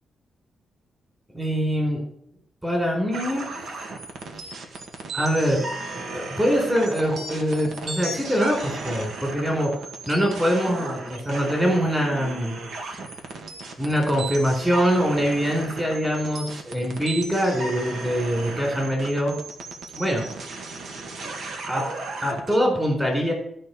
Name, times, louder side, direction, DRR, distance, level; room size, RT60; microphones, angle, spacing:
voice 1, 1.3-2.0 2.6-3.5 5.1-5.6 6.1-9.7 10.1-12.6 13.8-19.3 20.0-20.2 21.2-21.3 21.7-21.8 22.2-23.3, equal, 10° right, 0 dB, 4.1 m, -23 dB
sound 1, 3.1-22.6, right 3 dB, 65° right, 1.8 m, -35 dB
13.5 x 5.4 x 6.8 m, 0.68 s
wide cardioid pair, 160°, 0 cm